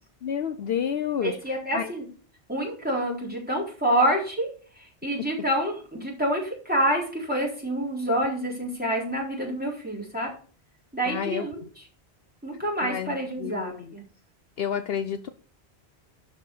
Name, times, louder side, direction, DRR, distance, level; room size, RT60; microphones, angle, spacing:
voice 1, 0.2-1.4 1.7-1.9 11.1-11.5 12.8-13.9 14.6-15.3, left 8 dB, 65° left, 10 dB, 0.9 m, -30 dB
voice 2, 1.2-2.1 2.5-4.5 4.7-10.3 10.9-11.9 12.4-14.0, right 1 dB, 10° right, -4 dB, 4.0 m, -27 dB
12.0 x 4.8 x 6.6 m, 0.42 s
omnidirectional pair, 1.1 m